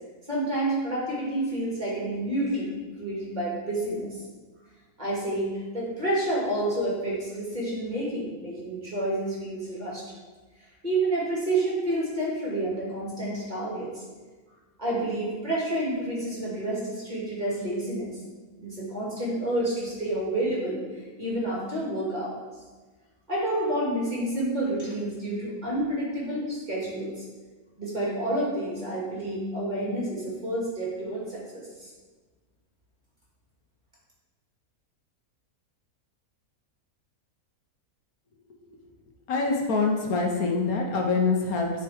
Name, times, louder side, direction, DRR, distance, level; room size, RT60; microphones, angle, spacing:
voice 1, 0.3-4.2 5.0-10.0 10.8-14.0 14.8-18.2 18.6-22.3 23.3-27.2 27.8-31.9, right 1 dB, 30° right, -6 dB, 2.3 m, -29 dB
voice 2, 39.3-41.7, left 4 dB, 80° left, 1 dB, 1.4 m, -25 dB
10.0 x 4.5 x 3.5 m, 1.3 s
omnidirectional pair, 1.5 m